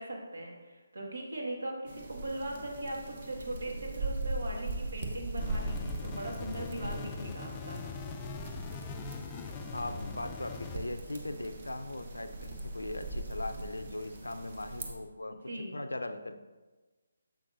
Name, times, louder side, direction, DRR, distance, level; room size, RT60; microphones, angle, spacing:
voice 1, 0.0-7.8 15.4-15.8, right 1 dB, 70° right, -1 dB, 1.7 m, -39 dB
sound 1, 1.9-14.9, right 2 dB, 40° right, 1.0 m, -40 dB
sound 2, 5.4-10.8, left 5 dB, 20° left, 0.4 m, -42 dB
voice 2, 9.7-15.4 15.7-16.4, left 2 dB, 85° left, 9 dB, 0.4 m, -39 dB
7.4 x 5.9 x 2.5 m, 1.2 s
figure-of-eight pair, 150°, 0 cm